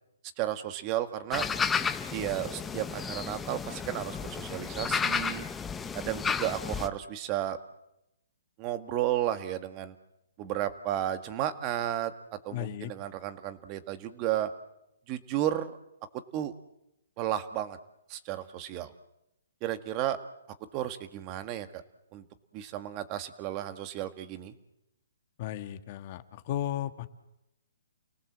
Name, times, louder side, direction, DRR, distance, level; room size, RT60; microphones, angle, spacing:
voice 1, 0.4-1.5 2.1-5.5 5.9-7.6 8.6-9.9 10.4-14.5 15.1-15.8 16.3-16.5 17.2-17.8 18.1-18.9 19.6-20.2 20.7-21.8 22.1-22.2 22.5-24.5, right 12 dB, 30° right, 9 dB, 1.8 m, -33 dB
sound 1, 1.3-6.9, left 6 dB, 10° left, 1.0 m, -32 dB
voice 2, 12.5-12.9 25.4-27.1, left 12 dB, 40° left, 8 dB, 1.7 m, -35 dB
30.0 x 18.5 x 7.5 m, 0.87 s
hypercardioid pair, 150°, 0 cm